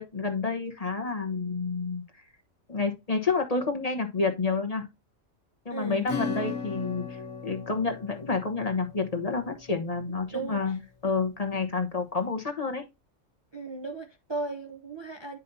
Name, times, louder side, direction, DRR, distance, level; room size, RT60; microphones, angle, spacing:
voice 1, 0.0-2.0 2.7-4.9 5.6-12.8, left 4 dB, 30° left, 1.2 m, -29 dB
voice 2, 5.7-6.0 10.3-10.8 13.5-15.4, right 3 dB, 25° right, 0.7 m, -36 dB
Acoustic guitar / Strum, 6.1-10.3, left 5 dB, 80° left, 1.6 m, -37 dB
9.4 x 5.5 x 2.7 m
omnidirectional pair, 1.3 m